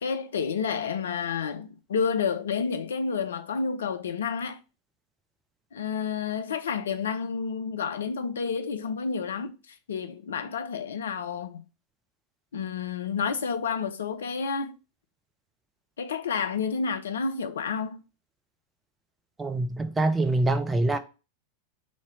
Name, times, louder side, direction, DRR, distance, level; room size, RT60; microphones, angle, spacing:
voice 1, 0.0-4.6 5.7-9.5 9.9-11.7 12.5-14.7 16.0-18.0, left 6 dB, 65° left, 0.4 m, -30 dB
voice 2, 19.4-21.0, right 2 dB, 15° right, 0.5 m, -25 dB
3.2 x 2.8 x 4.6 m
figure-of-eight pair, 90°, 0 cm